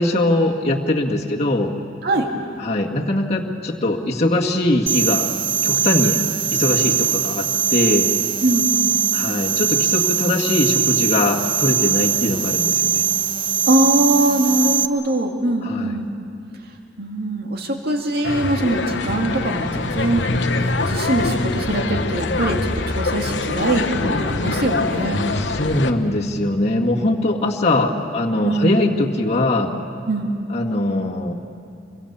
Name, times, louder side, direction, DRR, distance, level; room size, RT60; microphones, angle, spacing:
voice 1, 0.0-1.7 2.6-5.3 5.6-6.2 6.5-8.1 9.1-13.0 15.6-15.9 25.4-29.7 30.5-31.3, left 1 dB, 35° left, -3 dB, 1.9 m, -21 dB
sound 1, 4.9-14.9, right 7 dB, 30° right, 0.9 m, -21 dB
voice 2, 8.4-9.1 13.7-16.1 17.0-20.3 20.6-25.2 28.4-28.8 30.1-30.3, right 1 dB, 60° right, 2 dB, 2.3 m, -22 dB
sound 2, 18.2-25.9, left 3 dB, 70° left, 1.1 m, -24 dB
27.5 x 24.0 x 7.1 m, 2.5 s
head